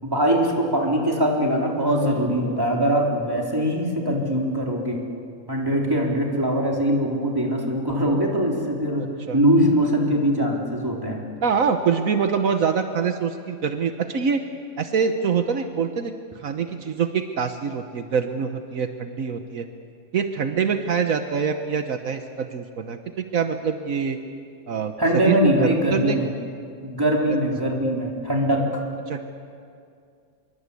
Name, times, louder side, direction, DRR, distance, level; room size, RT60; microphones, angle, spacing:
voice 1, 0.0-5.0 5.5-9.0 9.3-11.2 25.0-26.3 26.8-28.8, equal, 15° right, -1 dB, 3.9 m, -22 dB
voice 2, 9.0-9.4 11.4-14.4 14.8-16.1 16.4-19.7 20.1-24.2 24.7-24.9 25.2-26.2 29.1-29.3, right 6 dB, 75° right, 6 dB, 1.5 m, -25 dB
26.0 x 23.5 x 8.4 m, 2.3 s
omnidirectional pair, 1.5 m